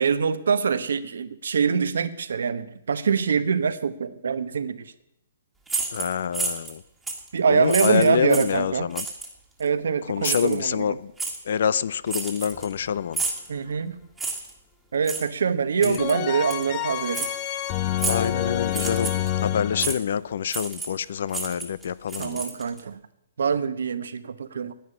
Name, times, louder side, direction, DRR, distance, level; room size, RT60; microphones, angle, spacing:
voice 1, 0.0-4.9 7.3-8.9 9.6-10.8 13.5-14.0 14.9-17.3 22.2-23.0 23.4-24.7, right 6 dB, 80° right, 12 dB, 1.1 m, -24 dB
sound 1, 5.7-6.8 7.1-7.3 7.7-8.6 9.0-9.3 10.2-10.6 11.2-11.4 12.1-12.8 13.1-13.5 14.2-14.5 15.0-15.3 15.8-16.2 16.5-16.6 17.1-17.3 18.0-18.3 18.7-19.3 19.8-20.0 20.5-21.0 21.3-22.8, right 3 dB, 5° right, 1.7 m, -30 dB
voice 2, 5.9-6.8 7.4-9.1 10.0-11.1 11.4-13.2 15.8-16.0 18.0-22.4, left 8 dB, 60° left, 19 dB, 0.6 m, -26 dB
sound 2, 12.5-13.3 16.0-19.9, left 12 dB, 30° left, 0.8 m, -28 dB
10.5 x 9.5 x 9.9 m, 0.82 s
hypercardioid pair, 155°, 0 cm